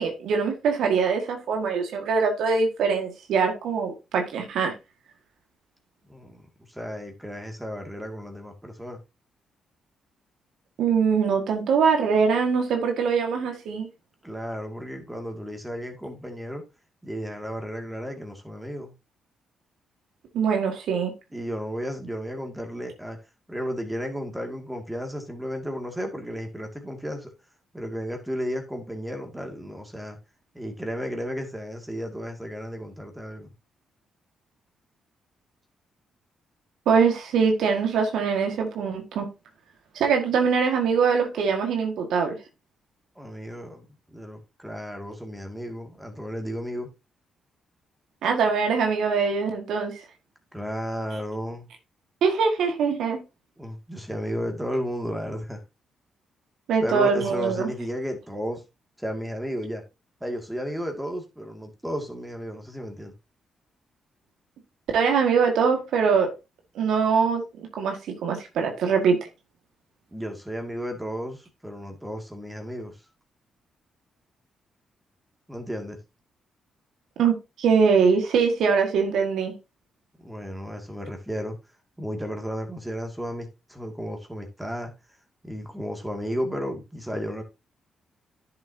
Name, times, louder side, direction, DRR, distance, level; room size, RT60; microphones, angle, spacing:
voice 1, 0.0-4.7 10.8-13.9 20.3-21.1 36.8-39.3 39.9-42.4 48.2-50.0 52.2-53.2 56.7-57.7 64.9-66.3 66.7-69.2 77.2-79.5, right 5 dB, 80° right, 1.8 m, -23 dB
voice 2, 6.1-9.0 14.2-16.6 17.0-18.9 21.3-23.2 23.5-27.3 27.7-30.2 30.5-33.5 43.2-43.9 44.1-46.9 50.5-51.7 53.6-55.6 56.8-58.6 59.0-59.8 60.2-63.1 70.1-73.0 75.5-76.0 80.2-81.6 82.0-84.9 85.4-87.4, equal, 10° right, 2.2 m, -33 dB
10.5 x 6.8 x 2.8 m
supercardioid pair, 60°, 0 cm